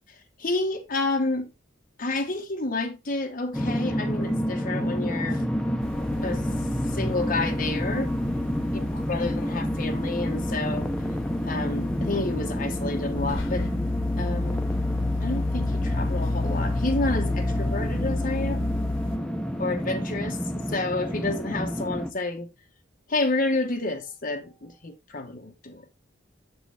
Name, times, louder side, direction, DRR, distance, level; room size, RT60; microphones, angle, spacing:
voice 1, 0.4-1.5 2.0-5.4 6.1-6.5 6.9-8.1 8.7-10.9 11.4-13.7 14.2-14.6 15.2-18.7 19.6-22.5 23.1-25.9, left 2 dB, 45° left, 1.1 m, -30 dB
sound 1, 3.5-22.1, equal, 5° left, 0.6 m, -29 dB
sound 2, 5.8-19.2, left 2 dB, 75° left, 1.1 m, -31 dB
6.7 x 6.0 x 3.3 m
head